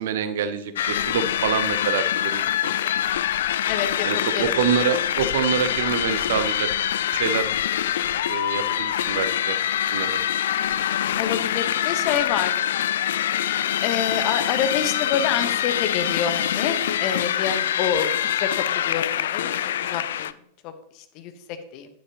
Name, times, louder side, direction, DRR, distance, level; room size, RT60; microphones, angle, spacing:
voice 1, 0.0-2.7 4.0-6.7 7.1-7.5 8.3-9.6 9.9-10.2, right 7 dB, 55° right, 11 dB, 0.8 m, -26 dB
sound 1, 0.8-20.3, left 10 dB, 60° left, 0.3 m, -25 dB
voice 2, 3.7-4.6 11.2-12.6 13.8-19.5 19.8-20.3 20.6-20.7 21.1-21.3 21.7-21.9, left 8 dB, 40° left, 9 dB, 1.2 m, -27 dB
10.5 x 9.8 x 3.0 m, 0.73 s
figure-of-eight pair, 90°, 0 cm